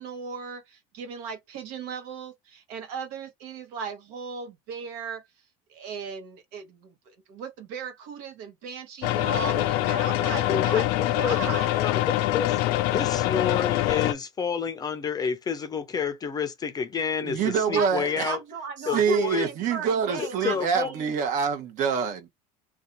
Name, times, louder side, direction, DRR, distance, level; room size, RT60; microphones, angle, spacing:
voice 1, 0.0-5.2 5.7-10.9 11.1-11.8 17.7-21.2, right 5 dB, 75° right, 1.1 m, -37 dB
sound 1, 9.0-14.1, left 15 dB, 75° left, 0.4 m, -24 dB
voice 2, 10.5-11.4 11.7-12.6 12.9-18.4 18.9-19.5 20.2-20.9, left 6 dB, 25° left, 0.5 m, -29 dB
voice 3, 17.2-18.3 18.9-22.3, right 6 dB, 50° right, 1.0 m, -26 dB
2.6 x 2.3 x 3.9 m
cardioid pair, 130°, 16 cm